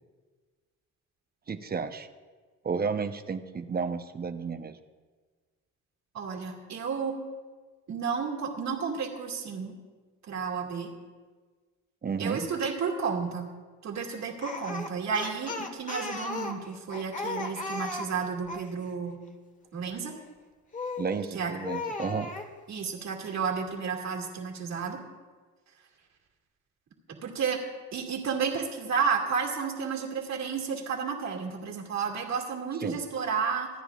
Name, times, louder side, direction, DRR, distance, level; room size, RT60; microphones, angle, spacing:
voice 1, 1.5-2.1 2.6-4.8 12.0-12.5 21.0-22.3 32.8-33.0, right 5 dB, 30° right, 9 dB, 0.9 m, -32 dB
voice 2, 6.1-7.1 7.9-9.7 10.3-10.9 12.2-13.5 13.8-19.2 19.7-20.1 21.3-21.5 22.7-25.0 27.2-27.6 27.9-33.7, right 6 dB, 60° right, 0 dB, 2.4 m, -32 dB
Speech, 14.4-18.7 20.7-21.2 21.6-22.5, left 3 dB, 25° left, 1.5 m, -36 dB
26.5 x 9.7 x 2.5 m, 1.4 s
cardioid pair, 90°, 30 cm